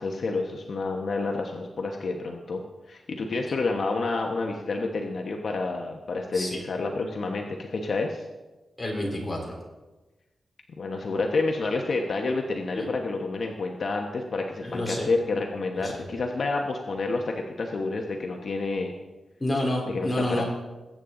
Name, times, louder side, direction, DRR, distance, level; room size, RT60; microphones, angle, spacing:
voice 1, 0.0-2.6 2.9-8.2 10.8-18.9 19.9-20.4, left 3 dB, 55° left, 2 dB, 1.1 m, -29 dB
voice 2, 8.8-9.6 12.7-12.9 14.6-15.1 15.8-16.0 19.4-20.4, left 1 dB, 15° left, -2 dB, 3.7 m, -29 dB
21.5 x 8.7 x 3.9 m, 1.1 s
wide cardioid pair, 130°, 0 cm